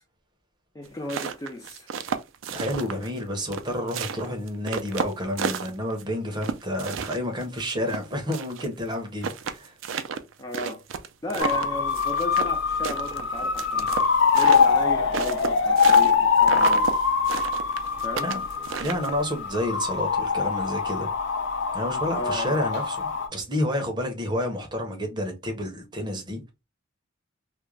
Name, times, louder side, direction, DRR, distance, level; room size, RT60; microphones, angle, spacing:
voice 1, 0.7-1.9 10.4-10.8 11.2-16.9 18.0-18.3 22.1-22.6, left 1 dB, 15° left, 0.3 m, -35 dB
sound 1, 0.9-3.2 3.5-6.0 6.4-8.7 8.9-9.0 9.2-12.6 12.8-16.2 16.4-16.9 17.3-19.3, right 6 dB, 75° right, 0.4 m, -31 dB
voice 2, 2.5-9.8 18.2-18.4 18.8-21.1 21.7-26.4, left 1 dB, 20° right, 0.6 m, -30 dB
sound 2, 11.4-23.3, left 5 dB, 65° left, 0.5 m, -23 dB
2.4 x 2.1 x 3.0 m
head